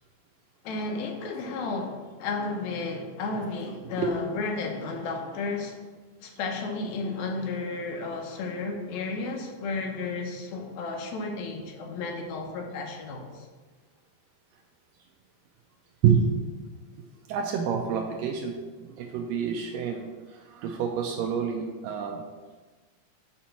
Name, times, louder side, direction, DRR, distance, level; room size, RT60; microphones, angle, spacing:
voice 1, 0.6-5.8 6.2-13.5, left 3 dB, 75° left, 2 dB, 2.6 m, -33 dB
voice 2, 17.3-18.6 18.9-22.2, right 7 dB, 80° right, 3 dB, 2.1 m, -27 dB
7.2 x 4.4 x 5.9 m, 1.3 s
omnidirectional pair, 4.4 m